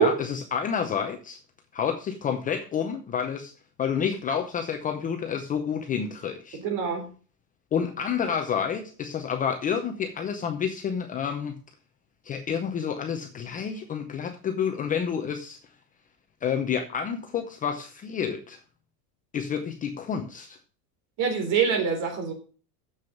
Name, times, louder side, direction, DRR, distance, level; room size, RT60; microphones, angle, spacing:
voice 1, 0.0-1.4 1.7-3.5 3.8-6.6 7.7-11.6 12.2-15.6 16.4-18.6 19.3-20.6, left 7 dB, 15° left, 0.7 m, -29 dB
voice 2, 6.5-7.1 21.2-22.3, right 6 dB, 40° right, 3.5 m, -24 dB
7.2 x 6.4 x 7.1 m
supercardioid pair, 150°, 47 cm